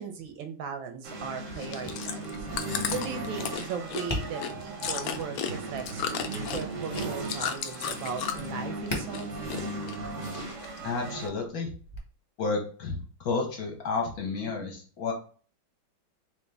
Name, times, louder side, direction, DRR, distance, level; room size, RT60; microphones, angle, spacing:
voice 1, 0.0-2.5 2.9-9.3, right 6 dB, 85° right, 6 dB, 1.5 m, -38 dB
sound 1, 1.0-11.3, right 2 dB, 60° right, 0.8 m, -37 dB
Chewing mastication, 1.5-8.6 8.9-9.6 9.9-10.8 11.3-11.4, left 8 dB, 80° left, 0.8 m, -34 dB
Tap, 4.0-12.0, left 1 dB, 40° left, 0.3 m, -43 dB
voice 2, 10.8-11.7 12.4-13.0 13.2-15.1, left 4 dB, 60° left, 1 dB, 1.2 m, -31 dB
3.7 x 2.9 x 3.3 m, 0.41 s
omnidirectional pair, 2.1 m